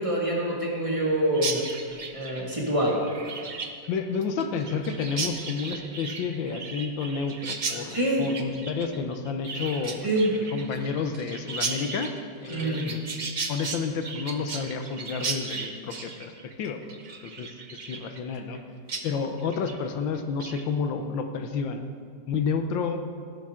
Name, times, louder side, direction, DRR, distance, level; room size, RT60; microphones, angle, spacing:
voice 1, 0.0-1.6 2.1-3.0 7.9-8.3 10.0-10.3 12.5-12.9, right 1 dB, 15° right, -4 dB, 2.0 m, -25 dB
Chirp tweet, 1.3-18.6 18.9-19.0 19.4-19.8 20.1-20.6, right 4 dB, 45° right, 0.5 m, -36 dB
voice 2, 3.9-12.1 12.4-13.0 13.5-16.3 16.6-16.8 17.2-17.5 17.9-18.6 19.0-21.8 22.3-23.0, left 5 dB, 85° left, 6 dB, 1.6 m, -30 dB
16.5 x 11.5 x 3.7 m, 2.1 s
omnidirectional pair, 2.0 m